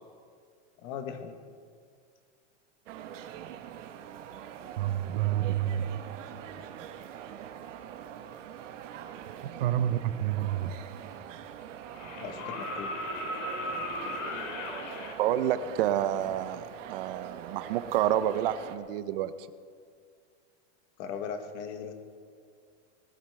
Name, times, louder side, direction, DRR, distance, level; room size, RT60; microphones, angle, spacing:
voice 1, 0.8-1.4 12.2-12.9 21.0-21.9, left 7 dB, 30° left, 7 dB, 1.1 m, -38 dB
sound 1, 2.9-18.8, right 9 dB, 80° right, 1.2 m, -43 dB
voice 2, 4.8-6.0 9.6-10.7 15.2-19.3, right 11 dB, 50° right, 13 dB, 0.6 m, -29 dB
sound 2, 10.8-10.9 11.9-15.1 16.9-17.0, left 1 dB, 85° left, 2.4 m, -36 dB
20.5 x 12.5 x 3.3 m, 2.1 s
supercardioid pair, 180°, 37 cm